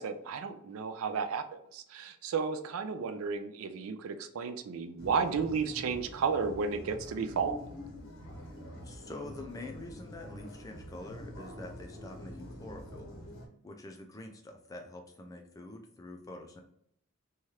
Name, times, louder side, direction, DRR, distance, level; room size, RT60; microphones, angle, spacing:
voice 1, 0.0-1.4 1.7-7.6, right 5 dB, 80° right, 0.4 m, -33 dB
sound 1, 5.0-13.5, equal, 70° left, 0.8 m, -46 dB
voice 2, 8.8-13.1 13.6-16.6, left 2 dB, 15° left, 0.3 m, -46 dB
3.1 x 2.4 x 2.8 m
head